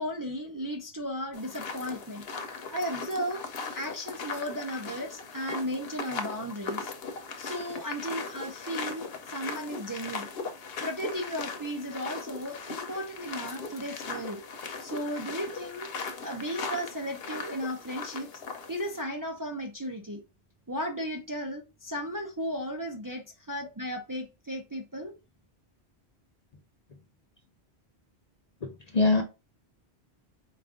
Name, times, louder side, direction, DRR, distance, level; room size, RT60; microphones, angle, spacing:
voice 1, 0.0-2.2 2.7-3.4 3.7-6.9 7.4-10.3 10.8-14.4 14.8-15.9 16.2-18.3 18.7-20.2 20.7-25.1, equal, 25° right, 0.4 m, -35 dB
sound 1, 1.3-19.0, left 4 dB, 65° left, 0.9 m, -39 dB
voice 2, 28.6-29.2, left 3 dB, 50° left, 0.5 m, -24 dB
4.5 x 2.5 x 3.5 m
omnidirectional pair, 1.1 m